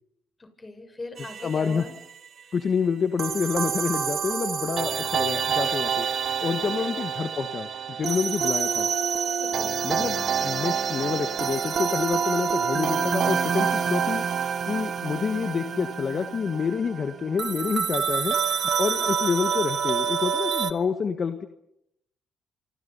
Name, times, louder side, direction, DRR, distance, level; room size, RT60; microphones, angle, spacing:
voice 1, 0.4-1.9 6.8-6.9 9.4-9.8 19.0-19.2, left 2 dB, 25° left, 7 dB, 7.0 m, -40 dB
sound 1, 1.2-1.9 3.2-20.7, right 7 dB, 55° right, 1.5 m, -27 dB
voice 2, 1.4-1.9 2.5-6.1 6.4-8.9 9.8-14.2 14.7-18.4 18.8-21.5, left 6 dB, 45° left, 8 dB, 1.5 m, -28 dB
28.0 x 27.0 x 5.7 m, 0.78 s
cardioid pair, 85°, 0 cm